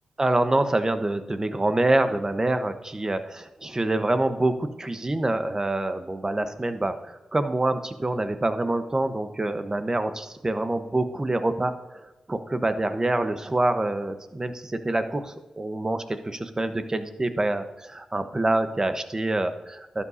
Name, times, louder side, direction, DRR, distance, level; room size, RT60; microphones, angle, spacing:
voice 1, 0.2-20.0, right 2 dB, 30° right, 9 dB, 1.0 m, -26 dB
12.0 x 8.5 x 2.7 m, 1.0 s
supercardioid pair, 40°, 2 cm